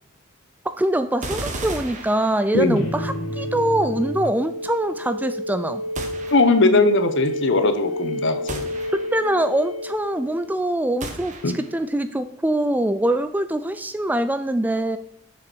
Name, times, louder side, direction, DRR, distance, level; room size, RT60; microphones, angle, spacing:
voice 1, 0.8-5.8 8.9-15.0, right 1 dB, 10° right, 11 dB, 0.4 m, -23 dB
sound 1, 1.2-2.9 6.0-6.8 8.5-9.4 11.0-11.9, right 2 dB, 35° right, 1.4 m, -34 dB
sound 2, 2.7-10.7, left 1 dB, 75° left, 2.6 m, -30 dB
voice 2, 6.3-8.6 11.4-11.5, left 2 dB, 60° left, 8 dB, 1.1 m, -19 dB
8.2 x 6.7 x 6.2 m, 0.73 s
head